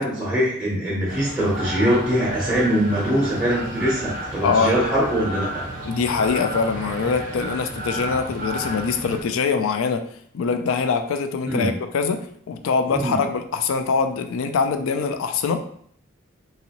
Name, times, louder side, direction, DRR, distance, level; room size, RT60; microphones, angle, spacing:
voice 1, 0.0-5.6 11.5-11.7 12.9-13.2, equal, 5° right, -6 dB, 0.7 m, -22 dB
sound 1, 1.1-9.2, right 1 dB, 40° right, 0.5 m, -32 dB
voice 2, 4.4-4.8 5.8-10.1 10.3-15.6, left 5 dB, 75° left, 8 dB, 0.3 m, -23 dB
2.9 x 2.7 x 2.8 m, 0.64 s
head